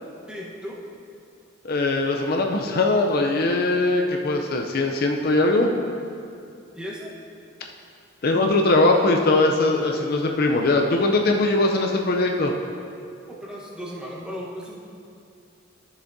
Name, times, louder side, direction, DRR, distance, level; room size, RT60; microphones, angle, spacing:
voice 1, 0.3-0.8 6.7-7.1 13.3-14.8, equal, 5° right, -5 dB, 1.1 m, -36 dB
voice 2, 1.6-5.7 8.2-12.5, left 2 dB, 50° left, 2 dB, 0.5 m, -21 dB
12.5 x 7.0 x 2.7 m, 2.5 s
head